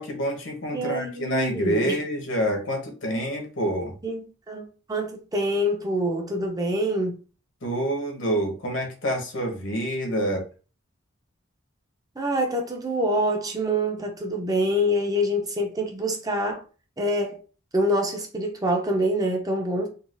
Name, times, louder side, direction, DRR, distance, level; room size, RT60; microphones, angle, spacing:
voice 1, 0.0-4.0 7.6-10.4, equal, 65° left, 1.0 m, -27 dB
voice 2, 0.7-2.0 4.0-7.2 12.2-16.6 17.0-17.4 17.7-19.9, equal, 20° right, 0.5 m, -26 dB
3.9 x 2.3 x 2.5 m
head